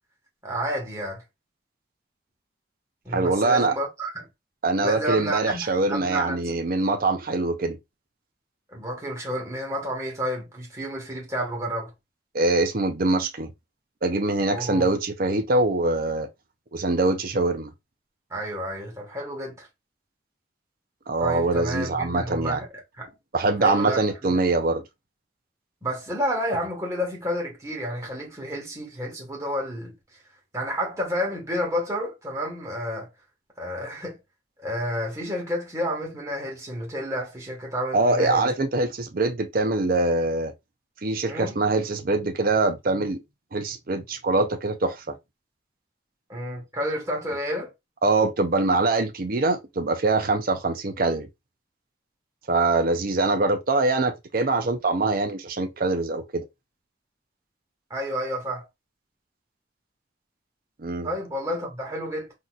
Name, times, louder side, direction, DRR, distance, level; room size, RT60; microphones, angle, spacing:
voice 1, 0.4-1.2 3.0-4.3 4.8-6.4 8.7-11.9 14.5-14.9 18.3-19.7 21.2-22.7 23.0-23.1 23.6-24.4 25.8-29.9 30.5-33.1 33.6-34.2 34.6-38.5 41.3-41.6 46.3-47.7 57.9-58.6 61.0-62.3, equal, 15° right, 1.4 m, -30 dB
voice 2, 3.1-3.7 4.6-7.8 12.3-13.5 14.0-16.3 16.7-17.7 21.1-22.6 23.3-24.8 37.9-40.5 41.0-43.2 43.5-45.2 48.0-51.3 52.5-56.4 60.8-61.1, right 2 dB, 50° right, 0.6 m, -23 dB
3.9 x 2.8 x 2.4 m
head